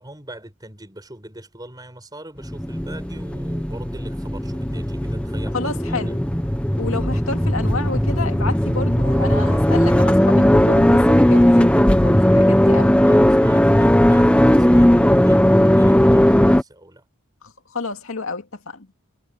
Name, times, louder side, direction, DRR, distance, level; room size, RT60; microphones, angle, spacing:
voice 1, 0.0-6.2 7.1-7.2 9.1-9.7 13.0-17.0, right 1 dB, 20° right, 5.0 m, -40 dB
sound 1, 2.4-16.6, equal, 5° left, 1.0 m, -16 dB
voice 2, 5.5-6.2 6.8-12.9 17.4-18.9, left 3 dB, 70° left, 2.2 m, -30 dB
head